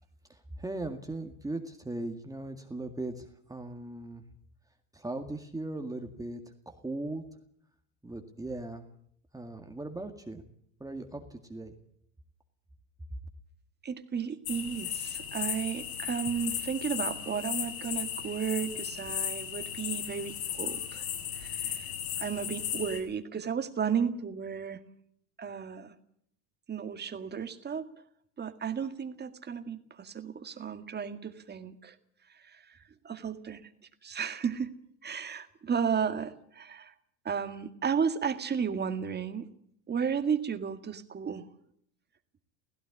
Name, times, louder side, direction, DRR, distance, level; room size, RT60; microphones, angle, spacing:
voice 1, 0.3-4.2 4.9-7.2 8.0-8.9 9.3-10.4 10.8-11.7, right 2 dB, 10° right, 5 dB, 2.0 m, -38 dB
voice 2, 13.8-21.1 21.4-21.9 22.2-24.8 25.4-25.9 26.7-27.9 28.4-31.9 32.4-32.8 33.0-33.6 34.0-34.7 35.0-36.9 37.3-39.5 39.9-41.5, right 7 dB, 25° right, 9 dB, 2.0 m, -33 dB
sound 1, 14.5-23.0, left 9 dB, 60° left, 7.5 m, -36 dB
16.5 x 16.0 x 10.0 m, 0.68 s
hypercardioid pair, 95°, 42 cm